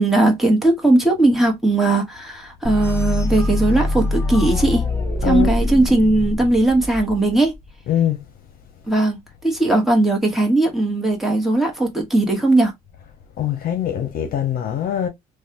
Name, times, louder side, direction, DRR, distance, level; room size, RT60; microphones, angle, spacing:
voice 1, 0.0-4.8 5.2-7.5 8.9-12.7, right 2 dB, ahead, 1.3 m, -18 dB
sound 1, 2.6-7.5, left 1 dB, 15° left, 1.0 m, -23 dB
voice 2, 5.2-5.5 7.9-8.2 13.4-15.1, left 10 dB, 60° left, 0.8 m, -22 dB
3.2 x 2.3 x 2.9 m
cardioid pair, 110°, 17 cm